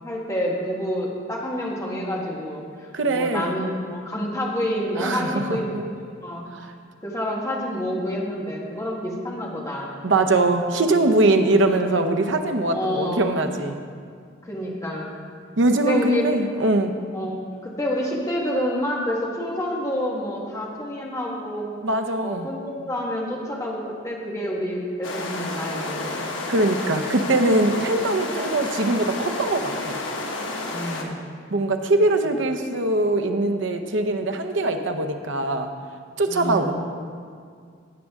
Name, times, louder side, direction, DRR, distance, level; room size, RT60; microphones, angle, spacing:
voice 1, 0.0-5.7 6.2-6.4 7.0-10.0 12.7-13.3 14.4-15.1 15.8-16.3 17.1-21.8 22.2-26.3 30.7-31.3 32.3-32.4 36.3-36.7, equal, 15° left, -3 dB, 1.4 m, -28 dB
voice 2, 2.9-3.5 5.0-5.8 6.5-6.7 10.0-13.8 15.6-16.9 21.8-22.5 26.5-30.0 31.5-35.7 36.2-36.7, right 2 dB, 70° right, 6 dB, 0.7 m, -22 dB
sound 1, 25.0-31.0, left 2 dB, 80° left, 1.1 m, -30 dB
15.5 x 6.4 x 3.6 m, 2.1 s
head